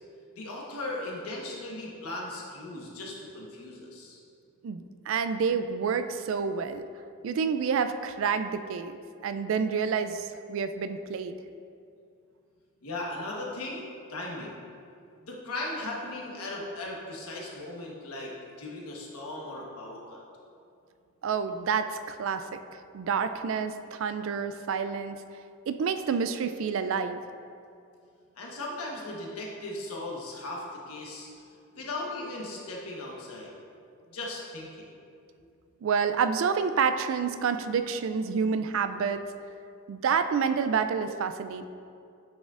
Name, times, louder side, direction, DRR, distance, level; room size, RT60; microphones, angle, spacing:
voice 1, 0.4-4.2 12.8-14.6 15.2-18.3 18.6-20.2 28.4-31.3 31.7-33.5 34.1-34.9, left 2 dB, 85° left, -2 dB, 1.3 m, -37 dB
voice 2, 4.6-6.8 7.2-9.0 9.2-11.4 21.2-25.2 25.7-27.2 35.8-39.2 39.9-41.7, right 6 dB, 65° right, 10 dB, 0.3 m, -28 dB
8.3 x 6.2 x 2.5 m, 2.4 s
head